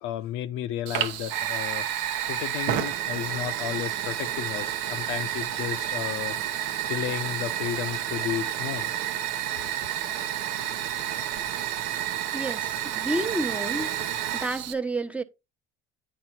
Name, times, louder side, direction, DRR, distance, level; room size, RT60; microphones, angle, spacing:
voice 1, 0.0-1.9 2.3-6.4 6.9-8.9 9.5-9.6, left 12 dB, 80° left, 0.8 m, -33 dB
Fire, 0.9-14.7, right 11 dB, 90° right, 1.0 m, -30 dB
voice 2, 12.3-13.9 14.3-15.2, right 2 dB, 5° right, 1.0 m, -30 dB
9.3 x 4.5 x 4.3 m
supercardioid pair, 100°, 21 cm